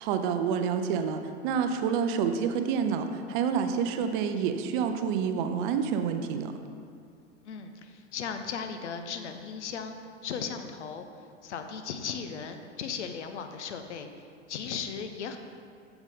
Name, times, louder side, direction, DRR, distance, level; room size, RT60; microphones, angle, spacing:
voice 1, 0.1-6.5, right 7 dB, 40° right, 7 dB, 0.6 m, -28 dB
voice 2, 7.4-10.0 10.2-11.1 11.4-14.1 14.5-15.4, left 6 dB, 65° left, 7 dB, 0.8 m, -36 dB
8.1 x 6.9 x 3.6 m, 2.3 s
figure-of-eight pair, 95°, 37 cm